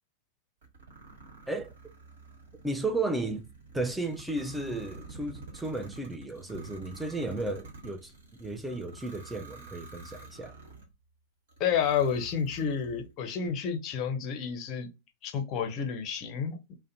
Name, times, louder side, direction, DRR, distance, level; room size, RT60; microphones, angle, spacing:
sound 1, 0.6-10.9 11.5-13.1, right 3 dB, 60° right, 1.2 m, -48 dB
voice 1, 2.6-3.4 3.7-8.1 8.4-10.6, right 2 dB, 5° right, 0.5 m, -34 dB
voice 2, 11.6-14.9 15.2-16.6, left 7 dB, 35° left, 0.7 m, -30 dB
2.4 x 2.1 x 2.7 m
figure-of-eight pair, 90°, 0 cm